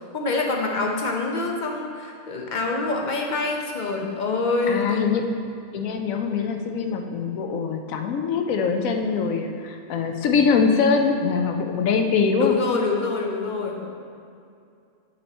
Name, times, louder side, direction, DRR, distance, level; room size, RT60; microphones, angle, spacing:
voice 1, 0.1-5.2 12.4-13.9, left 3 dB, 45° left, 1 dB, 0.7 m, -25 dB
voice 2, 4.7-5.2 5.7-12.6, left 5 dB, 80° left, 4 dB, 1.1 m, -23 dB
8.5 x 4.3 x 4.2 m, 2.4 s
omnidirectional pair, 1.4 m